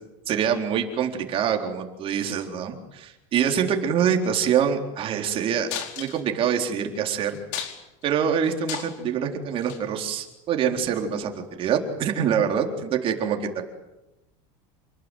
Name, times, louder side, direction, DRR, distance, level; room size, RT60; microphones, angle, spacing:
voice 1, 0.3-5.7 6.0-7.4 8.0-13.6, right 8 dB, 35° right, 3 dB, 4.1 m, -25 dB
sound 1, 5.7-6.5 6.9-7.0 7.3-8.0 8.4-9.1 9.6-9.8 10.8-10.9, left 9 dB, 65° left, 4.7 m, -33 dB
29.0 x 20.0 x 9.4 m, 0.97 s
cardioid pair, 160°, 16 cm